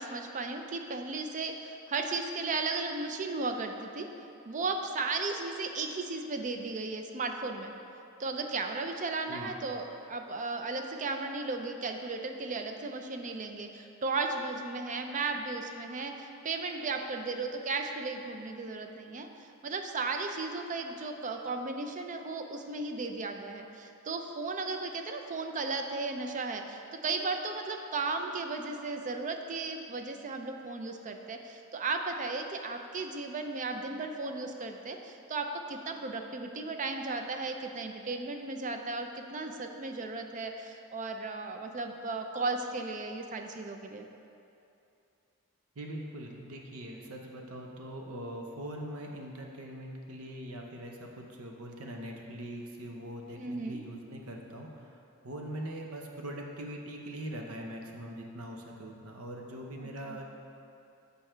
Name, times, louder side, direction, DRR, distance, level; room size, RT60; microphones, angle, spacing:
voice 1, 0.0-4.1 4.5-7.7 8.2-19.3 19.6-44.1 53.4-53.8 59.8-60.2, right 3 dB, 35° right, 5 dB, 0.5 m, -35 dB
voice 2, 9.3-9.6 45.8-55.0 55.2-60.4, right 1 dB, 75° right, 1 dB, 0.8 m, -42 dB
6.9 x 5.3 x 4.4 m, 2.7 s
head